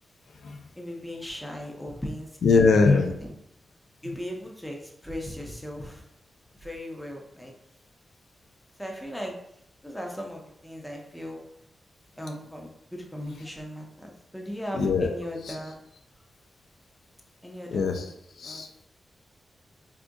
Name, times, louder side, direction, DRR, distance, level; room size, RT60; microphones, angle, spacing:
voice 1, 0.7-3.3 4.0-6.0 6.6-7.5 8.8-9.4 9.8-11.4 12.2-15.8 17.4-18.1 18.4-18.6, equal, 5° left, 0 dB, 0.5 m, -38 dB
voice 2, 2.4-3.1 14.7-15.1 15.4-15.5 17.7-18.1 18.4-18.9, left 4 dB, 80° left, 4 dB, 0.3 m, -22 dB
3.7 x 2.4 x 2.5 m, 0.75 s
wide cardioid pair, 155°, 0 cm